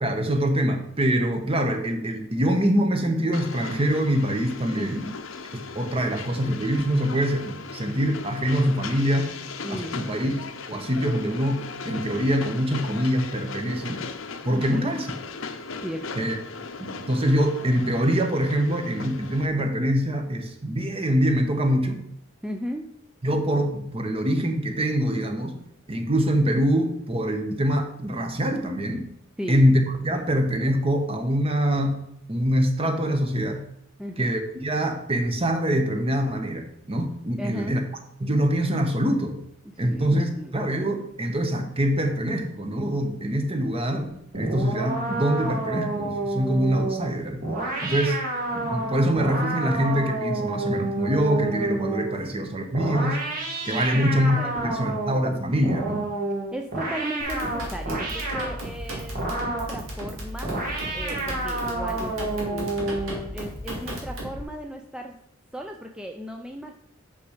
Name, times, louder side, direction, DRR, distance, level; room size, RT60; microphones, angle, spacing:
voice 1, 0.0-5.0 5.5-9.3 9.7-10.3 10.7-14.0 14.4-15.0 16.2-16.4 16.8-22.0 23.2-25.6 25.9-29.1 29.5-32.0 32.3-33.6 34.2-37.8 38.2-39.4 39.8-47.4 47.8-48.2 48.5-53.3 53.6-56.1, equal, 30° right, 6 dB, 1.0 m, -24 dB
Train, 3.3-19.5, left 4 dB, 80° left, 0.8 m, -38 dB
voice 2, 4.7-5.2 9.6-10.0 14.5-15.0 15.8-16.3 22.4-22.9 29.4-29.6 34.0-34.4 37.4-37.8 39.6-40.6 52.2-52.3 53.7-54.0 54.4-54.7 56.5-63.0 63.3-65.2 65.5-66.7, equal, 5° right, 2 dB, 0.4 m, -36 dB
sound 1, 44.3-52.2 52.7-55.3 55.6-58.6 59.1-59.8 60.4-63.3, right 2 dB, 45° right, 1.9 m, -29 dB
sound 2, 57.2-64.4, equal, 85° right, 2.5 m, -35 dB
6.5 x 5.8 x 4.9 m, 0.76 s
head